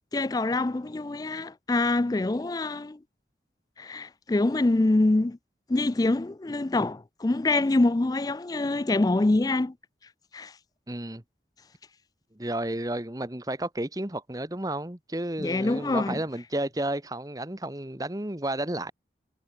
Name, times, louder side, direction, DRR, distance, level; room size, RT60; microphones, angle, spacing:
voice 1, 0.1-3.0 3.8-5.4 5.7-9.7 10.3-10.5 15.4-16.2, left 2 dB, 20° left, 0.4 m, -25 dB
voice 2, 10.9-11.2 12.4-18.9, right 1 dB, 20° right, 1.3 m, -32 dB
head